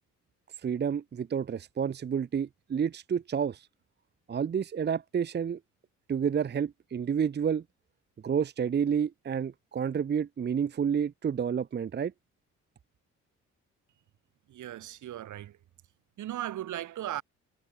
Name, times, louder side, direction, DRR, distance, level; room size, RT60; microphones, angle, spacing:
voice 1, 0.6-3.7 4.3-5.6 6.1-7.6 8.2-12.1, right 7 dB, 35° right, 0.8 m, -30 dB
voice 2, 14.5-15.6 16.2-17.2, right 12 dB, 75° right, 5.7 m, -37 dB
cardioid pair, 90°, 30 cm